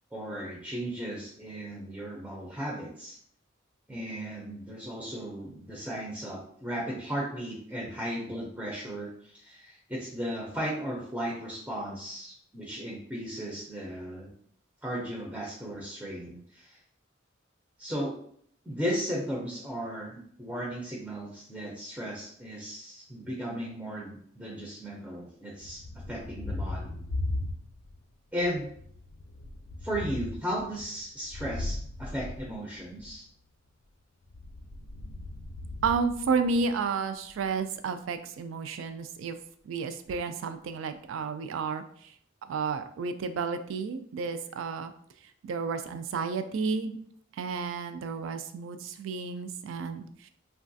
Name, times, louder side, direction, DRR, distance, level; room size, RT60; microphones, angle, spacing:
voice 1, 0.1-3.2 3.9-14.3 14.8-16.8 17.8-18.1 18.7-25.8 26.1-27.0 28.3-28.7 29.8-33.2, equal, 5° right, -4 dB, 0.4 m, -36 dB
Thunder, 25.6-28.0 28.4-33.2 34.2-36.9, left 2 dB, 85° left, 0.4 m, -38 dB
voice 2, 35.8-39.4 39.6-42.1 42.5-44.9 45.4-47.0 47.4-50.3, right 5 dB, 80° right, 10 dB, 0.3 m, -31 dB
3.1 x 2.3 x 2.6 m, 0.62 s
head